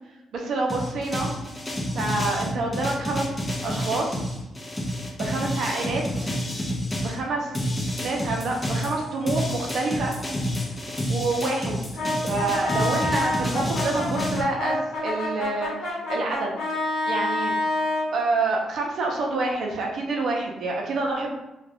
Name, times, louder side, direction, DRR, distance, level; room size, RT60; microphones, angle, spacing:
voice 1, 0.3-1.3 1.9-3.3 3.6-4.3 5.2-6.3 7.0-7.6 8.0-10.1 11.1-11.8 12.2-16.5 17.1-17.5 18.1-21.3, right 3 dB, 65° right, 0 dB, 0.7 m, -27 dB
sound 1, 0.7-7.2 7.5-14.4, equal, 15° left, 0.6 m, -29 dB
Brass instrument, 12.0-18.1, left 1 dB, 85° left, 1.0 m, -27 dB
2.4 x 2.3 x 3.4 m, 0.97 s
cardioid pair, 90°, 0 cm